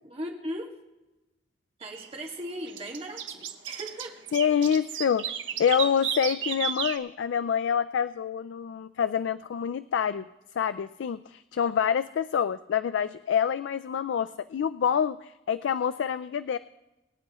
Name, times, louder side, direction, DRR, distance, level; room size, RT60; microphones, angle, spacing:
voice 1, 0.1-0.7 1.8-4.2, equal, 35° right, 0 dB, 1.7 m, -37 dB
sound 1, 1.8-2.1 2.7-7.0, right 9 dB, 90° right, 0.9 m, -33 dB
voice 2, 4.3-5.3 5.6-10.3 10.6-16.6, left 7 dB, 75° left, 13 dB, 0.3 m, -27 dB
23.0 x 9.2 x 3.0 m, 1.0 s
head